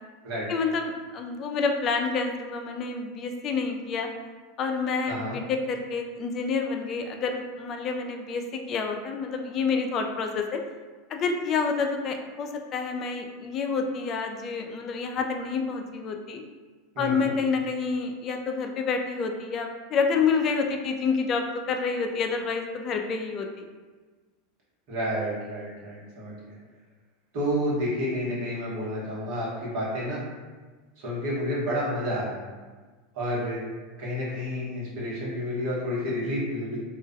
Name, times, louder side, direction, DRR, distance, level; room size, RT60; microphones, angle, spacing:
voice 1, 0.5-4.1 4.6-10.6 11.1-16.4 17.0-23.7, left 5 dB, 40° left, 4 dB, 0.3 m, -28 dB
voice 2, 5.1-5.4 16.9-17.3 24.9-26.5 27.3-30.2 31.0-32.4 33.1-33.6 34.0-36.8, equal, 55° right, -7 dB, 1.0 m, -30 dB
2.3 x 2.1 x 2.5 m, 1.4 s
hypercardioid pair, 95°, 0 cm